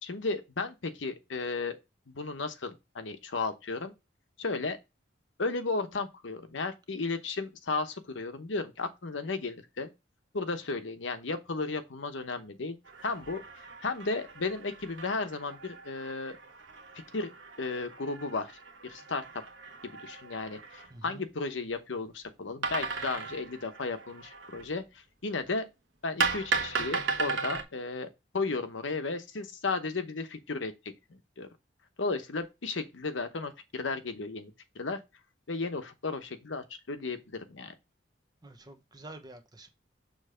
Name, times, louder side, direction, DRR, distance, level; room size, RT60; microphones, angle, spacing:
voice 1, 0.0-1.8 2.1-3.9 4.4-4.8 5.4-9.9 10.3-12.8 13.0-16.4 17.1-17.3 17.6-19.2 19.8-25.7 26.0-28.1 28.3-30.7 31.1-31.5 32.0-35.0 35.5-37.7, left 3 dB, 80° left, 0.9 m, -34 dB
sound 1, 12.9-20.9 22.6-24.7 26.2-27.6, right 4 dB, 75° right, 1.0 m, -36 dB
voice 2, 20.9-21.2 38.4-39.7, right 2 dB, 20° right, 0.9 m, -48 dB
6.6 x 3.1 x 4.9 m
head